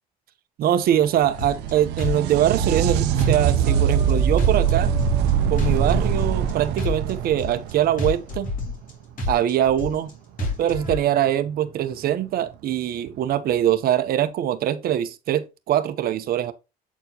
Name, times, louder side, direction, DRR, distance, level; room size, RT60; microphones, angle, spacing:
voice 1, 0.6-4.9 5.5-8.5 9.3-10.1 10.6-16.5, right 11 dB, 65° right, 0.8 m, -23 dB
sound 1, 0.9-8.5 11.9-12.0 13.1-13.2, right 8 dB, 90° right, 0.7 m, -23 dB
sound 2, 1.4-1.7 2.0-2.9 3.2-4.1 4.4-5.3 5.6-6.5 6.8-7.7 8.0-8.9 9.2-10.1 10.4-11.0, left 2 dB, 50° left, 3.2 m, -28 dB
sound 3, 3.5-6.1 8.7-8.8 10.4-11.0, right 2 dB, 20° right, 1.9 m, -41 dB
8.2 x 4.3 x 2.9 m
cardioid pair, 110°, 17 cm